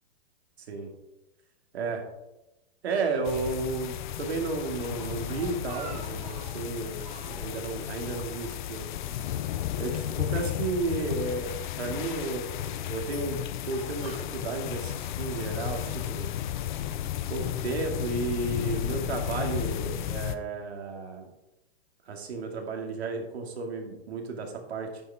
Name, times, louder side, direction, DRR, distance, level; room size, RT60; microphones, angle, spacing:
voice 1, 2.8-8.9 9.8-12.5 12.9-16.3 17.3-21.3 22.1-25.0, right 3 dB, 80° right, 2 dB, 2.5 m, -33 dB
sound 1, 3.2-20.4, left 11 dB, 50° left, 0.7 m, -33 dB
Speech, 4.7-6.7 7.0-7.6 7.9-9.1 9.3-9.5 10.3-11.3 12.0-12.4 13.1-14.7, right 6 dB, 20° right, 0.7 m, -49 dB
9.9 x 9.0 x 3.6 m, 0.96 s
hypercardioid pair, 155°, 32 cm